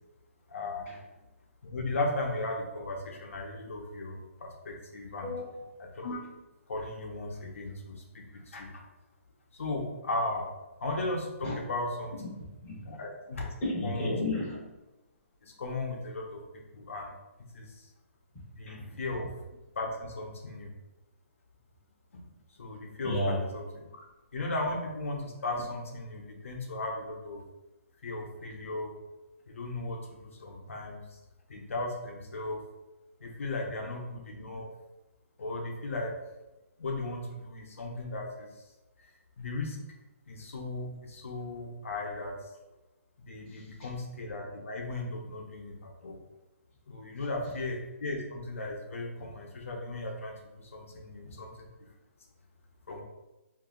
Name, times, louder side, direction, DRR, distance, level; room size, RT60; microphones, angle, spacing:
voice 1, 0.5-0.9 1.6-5.3 5.8-6.2 6.7-8.8 9.5-10.4 10.8-12.2 12.8-13.5 13.8-14.1 15.4-16.4 16.7-17.1 17.5-17.9 18.5-19.3 19.7-20.7 22.1-22.2 22.6-24.0 24.3-27.4 28.0-29.0 29.5-31.2 31.5-32.6 33.2-34.7 35.4-36.1 36.8-38.5 39.0-39.1 39.4-39.8 40.3-42.3 43.2-46.2 46.9-51.7 52.9-53.0, left 2 dB, 65° left, 0 dB, 0.8 m, -36 dB
voice 2, 5.2-5.7 11.4-11.5 12.2-12.8 13.6-14.6 18.7-18.8 23.0-23.4 51.2-51.3, left 1 dB, 10° left, -8 dB, 0.8 m, -33 dB
2.8 x 2.6 x 3.7 m, 1.0 s
hypercardioid pair, 180°, 8 cm